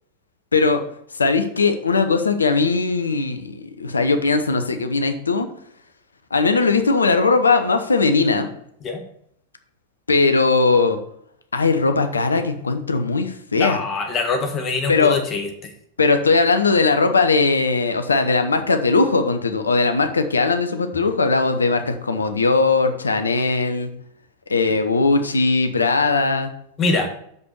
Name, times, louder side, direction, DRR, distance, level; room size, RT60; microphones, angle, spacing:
voice 1, 0.5-0.8 1.1-5.5 6.3-8.5 10.1-11.0 11.5-13.8 14.9-15.2 16.0-23.9 24.5-26.5, left 4 dB, 75° left, 8 dB, 0.8 m, -19 dB
voice 2, 13.6-15.7 26.8-27.1, left 3 dB, 30° left, 3 dB, 1.6 m, -24 dB
6.3 x 5.4 x 6.8 m, 0.70 s
figure-of-eight pair, 90°, 0 cm